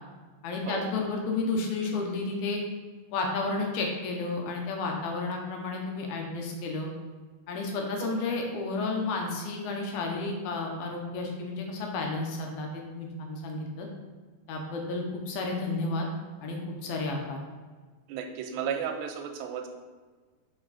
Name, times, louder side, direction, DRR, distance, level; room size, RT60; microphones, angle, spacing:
voice 1, 0.4-2.6 3.1-6.9 7.5-13.9 14.5-16.1 16.4-16.6 16.8-17.4, left 3 dB, 75° left, 1 dB, 2.5 m, -32 dB
voice 2, 18.1-19.7, right 7 dB, 90° right, 5 dB, 2.8 m, -34 dB
5.7 x 5.6 x 4.0 m, 1.4 s
omnidirectional pair, 4.8 m